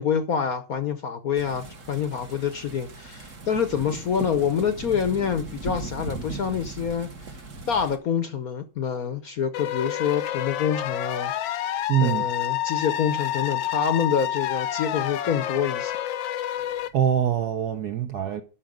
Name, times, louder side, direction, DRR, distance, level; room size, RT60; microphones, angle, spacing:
voice 1, 0.0-7.1 7.7-15.9, left 7 dB, 55° left, 1.0 m, -27 dB
sound 1, 1.3-8.0, right 3 dB, 40° right, 1.4 m, -38 dB
sound 2, 9.5-16.9, left 12 dB, 75° left, 1.3 m, -29 dB
voice 2, 11.9-12.3 16.9-18.4, right 9 dB, 70° right, 1.0 m, -24 dB
11.5 x 6.1 x 5.2 m
omnidirectional pair, 2.4 m